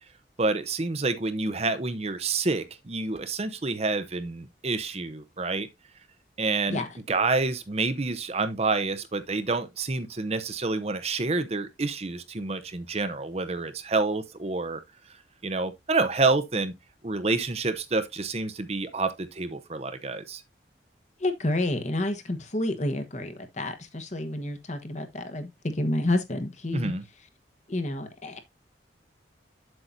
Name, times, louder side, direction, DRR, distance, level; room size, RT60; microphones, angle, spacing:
voice 1, 0.4-5.7 6.4-14.8 15.4-16.7 17.0-20.4 26.7-27.0, right 3 dB, 35° right, 0.7 m, -28 dB
voice 2, 21.2-26.9 27.7-28.4, left 1 dB, 40° left, 1.3 m, -29 dB
7.8 x 7.6 x 2.6 m
head